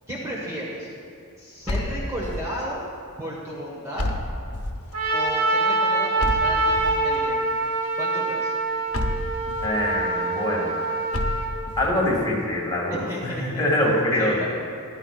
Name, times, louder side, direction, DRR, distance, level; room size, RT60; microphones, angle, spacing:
voice 1, 0.1-0.9 1.4-2.8 3.2-4.1 5.1-7.4 8.0-8.5 12.9-13.7 14.2-14.5, right 1 dB, 15° right, -5 dB, 1.3 m, -33 dB
sound 1, 1.7-2.6 4.0-4.9 6.2-7.2 8.9-9.8 11.1-12.0, left 1 dB, 70° left, 0.9 m, -29 dB
Trumpet, 4.9-11.5, right 2 dB, 70° right, 2.3 m, -24 dB
voice 2, 9.6-10.8 11.8-14.5, left 1 dB, 20° left, -5 dB, 2.2 m, -24 dB
14.5 x 12.0 x 2.4 m, 2.3 s
head